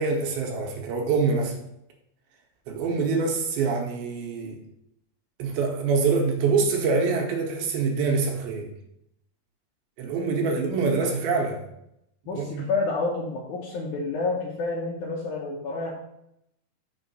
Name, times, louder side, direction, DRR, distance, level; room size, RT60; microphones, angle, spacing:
voice 1, 0.0-1.6 2.7-4.6 5.4-8.7 10.0-11.6 12.3-12.7, right 4 dB, 75° right, 1 dB, 2.5 m, -25 dB
voice 2, 12.3-15.9, left 3 dB, 80° left, -2 dB, 1.7 m, -29 dB
6.5 x 3.6 x 5.3 m, 0.78 s
omnidirectional pair, 4.7 m